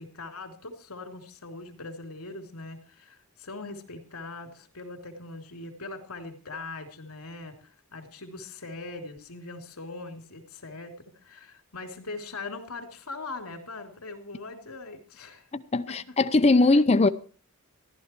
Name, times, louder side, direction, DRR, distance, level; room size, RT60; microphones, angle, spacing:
voice 1, 0.0-15.5 15.9-16.1, left 3 dB, 80° left, 3.0 m, -41 dB
voice 2, 15.5-17.1, left 2 dB, 30° left, 0.6 m, -21 dB
14.5 x 11.5 x 4.5 m
head